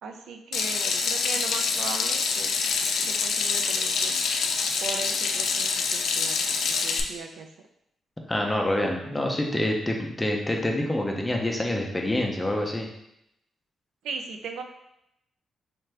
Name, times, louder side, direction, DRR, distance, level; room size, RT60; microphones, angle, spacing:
voice 1, 0.0-2.5 3.0-4.2 4.8-7.5 14.0-14.6, right 5 dB, 90° right, 4 dB, 0.4 m, -38 dB
Water tap faucet / Sink (filling or washing), 0.5-7.0, left 5 dB, 70° left, 0.4 m, -26 dB
voice 2, 8.3-12.9, left 1 dB, 10° left, 0 dB, 0.5 m, -26 dB
4.4 x 2.5 x 3.2 m, 0.80 s
wide cardioid pair, 160°, 0 cm